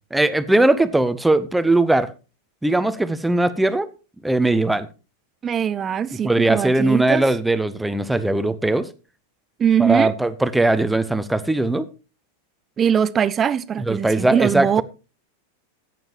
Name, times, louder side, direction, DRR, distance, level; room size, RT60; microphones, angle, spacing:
voice 1, 0.1-2.1 2.6-3.9 4.2-4.9 6.1-8.9 9.8-11.9 13.8-14.8, right 2 dB, 5° right, 0.8 m, -19 dB
voice 2, 5.4-7.2 9.6-10.1 12.8-14.8, right 8 dB, 25° right, 0.4 m, -21 dB
14.0 x 9.2 x 3.0 m
figure-of-eight pair, 90°, 0 cm